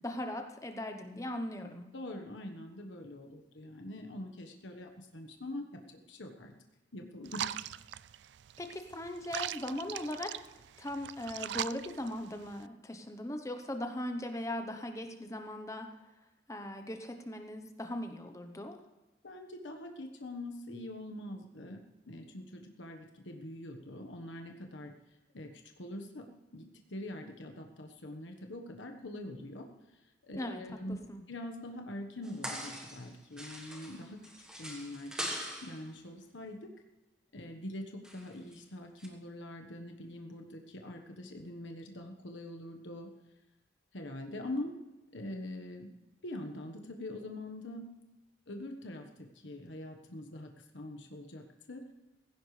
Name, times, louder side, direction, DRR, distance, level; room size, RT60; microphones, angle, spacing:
voice 1, 0.0-1.9 8.6-10.3 10.8-15.9 16.5-18.8 30.3-30.6 30.9-31.2, left 1 dB, 15° left, 5 dB, 0.9 m, -39 dB
voice 2, 1.9-6.5 6.9-7.5 19.2-21.8 22.1-24.9 25.3-26.2 26.5-29.7 30.2-31.0 31.3-34.2 34.6-35.1 35.6-36.7 37.3-43.1 43.9-44.8 45.1-45.9 46.2-47.8 48.5-51.9, left 1 dB, 80° left, 4 dB, 1.3 m, -44 dB
sound 1, 7.3-12.7, right 11 dB, 70° right, 0.3 m, -41 dB
sound 2, 32.2-33.1 33.4-35.8 38.0-38.6 39.0-39.1, equal, 5° right, 1.4 m, -42 dB
17.0 x 15.5 x 3.3 m, 1.1 s
head